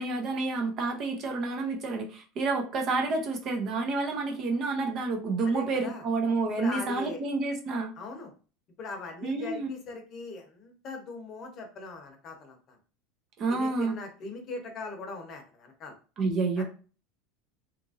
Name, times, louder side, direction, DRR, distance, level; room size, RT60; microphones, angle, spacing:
voice 1, 0.0-7.9 9.2-9.7 13.4-13.9 16.2-16.6, right 3 dB, 40° right, 3 dB, 0.6 m, -29 dB
voice 2, 5.4-6.0 6.6-7.2 8.0-8.3 8.8-12.8 13.5-15.9 16.6-16.7, left 3 dB, 40° left, 3 dB, 0.8 m, -40 dB
2.9 x 2.5 x 2.5 m, 0.37 s
supercardioid pair, 130°, 0 cm